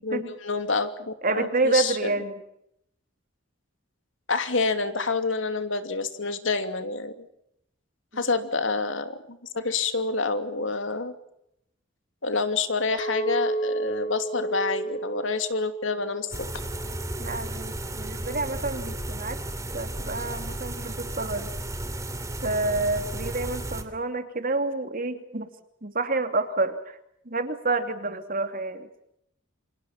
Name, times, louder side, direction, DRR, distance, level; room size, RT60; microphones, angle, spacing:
voice 1, 0.0-2.0 4.3-7.3 8.2-11.1 12.2-16.5, left 4 dB, 70° left, 9 dB, 2.8 m, -28 dB
voice 2, 1.2-2.4 8.1-8.3 17.2-19.4 19.7-21.5 22.4-25.5 25.8-27.0 27.2-28.9, right 3 dB, 45° right, 8 dB, 2.8 m, -28 dB
Chink clink, 13.0-17.3 17.8-18.2, right 2 dB, 30° left, 2.8 m, -32 dB
sound 1, 16.3-23.8, right 1 dB, 15° right, 3.0 m, -34 dB
29.0 x 26.0 x 5.9 m, 0.78 s
head